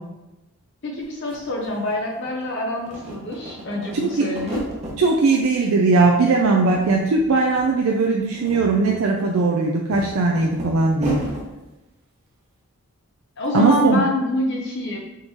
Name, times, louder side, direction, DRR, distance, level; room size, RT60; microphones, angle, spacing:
voice 1, 0.8-4.6 13.4-15.0, left 1 dB, 55° left, -1 dB, 0.6 m, -26 dB
sound 1, 1.0-1.1 1.3-2.4 2.8-5.0 5.4-6.1 6.4-7.3 7.5-7.7 8.2-11.4, left 1 dB, 30° right, 0.9 m, -34 dB
voice 2, 3.9-4.2 5.0-11.2 13.5-14.0, right 3 dB, 70° right, 0 dB, 0.4 m, -19 dB
3.6 x 2.9 x 4.1 m, 1.0 s
head